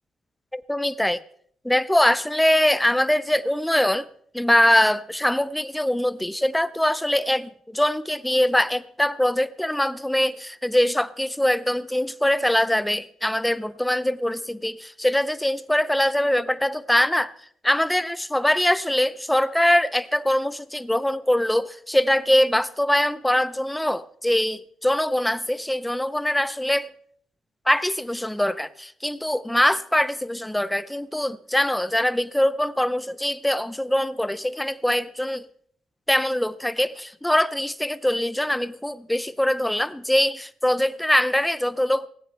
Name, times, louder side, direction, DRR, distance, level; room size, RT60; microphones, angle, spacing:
voice 1, 0.5-1.2 1.6-4.1 4.3-17.3 17.6-26.9 27.7-35.5 36.1-42.1, left 1 dB, 5° left, 0.5 m, -23 dB
18.5 x 17.0 x 3.4 m
cardioid pair, 135°, 0 cm